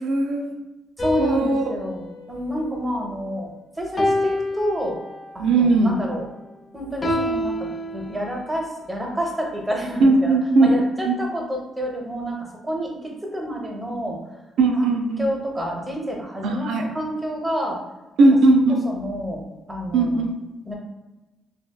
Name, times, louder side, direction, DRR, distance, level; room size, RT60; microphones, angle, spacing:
voice 1, 0.0-0.4 1.2-1.6 5.4-5.9 10.0-10.7 11.0-11.1 14.6-15.2 16.4-16.8 18.2-18.9 19.9-20.3, right 3 dB, 80° right, 3 dB, 0.4 m, -18 dB
sound 1, 1.0-3.4 4.0-5.4 7.0-8.7, left 1 dB, 35° left, 0.4 m, -28 dB
voice 2, 1.0-3.5 3.8-5.0 5.3-6.3 6.7-7.7 7.9-10.4 10.6-14.2 14.8-14.9 15.2-17.8 18.2-18.3 18.8-19.4 19.7-20.2 20.7-20.8, equal, 15° right, 0 dB, 0.7 m, -28 dB
3.4 x 2.2 x 2.2 m, 1.1 s
cardioid pair, 90°, 0 cm